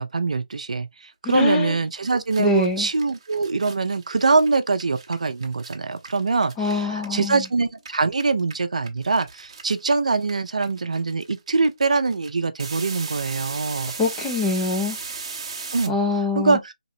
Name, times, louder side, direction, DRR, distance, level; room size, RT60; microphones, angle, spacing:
voice 1, 0.0-13.9 15.7-16.0 16.4-16.7, right 4 dB, 70° right, 0.5 m, -23 dB
voice 2, 1.2-1.7 2.4-2.9 6.6-7.4 14.0-15.0 15.9-16.6, left 3 dB, 10° left, 0.5 m, -23 dB
sound 1, 1.7-1.8 2.0-7.5 7.7-15.9, right 4 dB, 40° right, 0.8 m, -37 dB
3.1 x 2.9 x 2.7 m
figure-of-eight pair, 160°, 4 cm